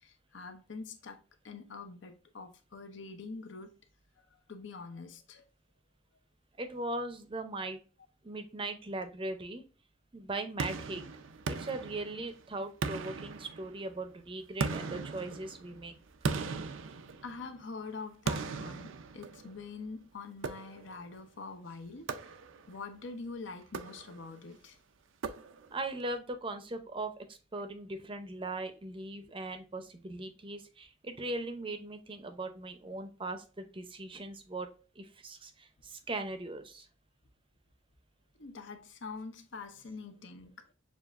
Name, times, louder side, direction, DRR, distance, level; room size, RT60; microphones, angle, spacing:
voice 1, 0.0-1.2 1.4-3.7 4.5-5.4 17.2-22.1 22.7-24.8 29.2-29.3 38.4-40.7, left 4 dB, 65° left, 0.7 m, -45 dB
voice 2, 6.6-7.8 8.2-9.6 10.1-11.0 11.5-15.9 25.7-34.7 35.0-36.9, right 2 dB, 25° right, 0.6 m, -39 dB
sound 1, 10.6-12.4 12.8-14.0 14.6-17.6 18.3-19.7 20.4-21.1 22.1-22.8 23.6-24.4 25.2-25.9, right 4 dB, 85° right, 0.4 m, -38 dB
6.9 x 2.4 x 2.4 m
head